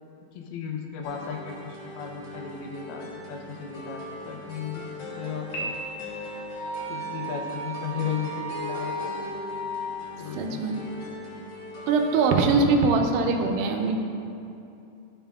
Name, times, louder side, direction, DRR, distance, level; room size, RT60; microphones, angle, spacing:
voice 1, 0.3-5.8 6.9-9.1 10.2-11.0, left 7 dB, 85° left, 2 dB, 2.7 m, -35 dB
sound 1, 1.0-12.5, left 1 dB, 55° left, 1.9 m, -40 dB
Piano, 5.5-6.6, right 1 dB, 70° left, 2.0 m, -35 dB
Wind instrument woodwind instrument, 5.6-9.9, right 2 dB, 60° right, 1.5 m, -36 dB
voice 2, 10.3-10.8 11.9-13.9, right 4 dB, 80° right, 3 dB, 2.2 m, -22 dB
12.5 x 5.5 x 2.3 m, 2.7 s
omnidirectional pair, 4.4 m